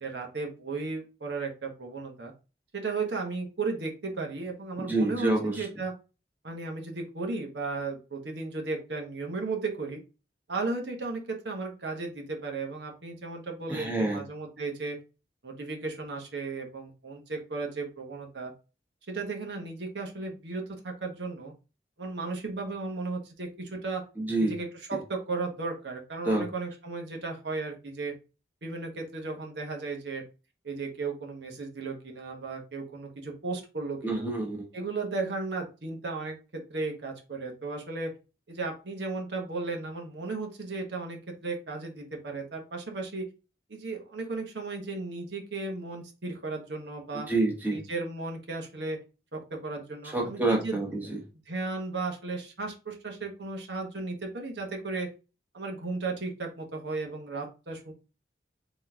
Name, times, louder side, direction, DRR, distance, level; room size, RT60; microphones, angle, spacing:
voice 1, 0.0-2.3 2.7-5.9 6.4-10.0 10.5-15.0 15.4-18.5 19.1-21.5 22.0-24.0 24.4-28.1 28.6-30.2 30.6-34.3 34.7-38.1 38.5-43.2 43.7-47.3 47.7-49.0 49.3-50.8 51.5-55.1 55.5-57.9, right 3 dB, 80° right, 1 dB, 1.2 m, -35 dB
voice 2, 4.8-5.7 13.7-14.2 24.2-24.5 26.2-26.5 34.0-34.6 47.3-47.8 50.1-51.2, right 2 dB, 10° right, 0 dB, 1.0 m, -27 dB
3.8 x 3.1 x 3.6 m, 0.31 s
head